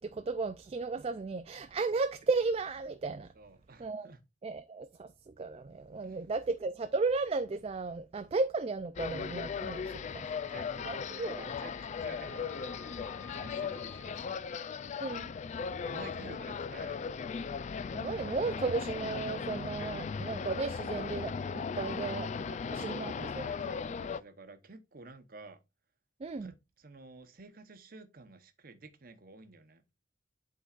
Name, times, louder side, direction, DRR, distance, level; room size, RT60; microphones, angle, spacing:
voice 1, 0.0-3.3 3.8-4.1 4.4-10.3 10.8-11.5 15.0-15.3 17.9-22.3 22.7-23.5 26.2-26.5, right 3 dB, 35° right, 0.4 m, -34 dB
voice 2, 3.3-4.2 6.0-6.2 10.2-12.5 13.2-14.4 15.6-17.0 22.4-25.6 26.4-29.8, right 3 dB, 55° right, 1.0 m, -51 dB
sound 1, 9.0-24.2, left 6 dB, 40° left, 0.3 m, -37 dB
Wind instrument woodwind instrument, 9.9-14.2, left 5 dB, 5° left, 1.0 m, -54 dB
11.5 x 3.9 x 2.4 m
head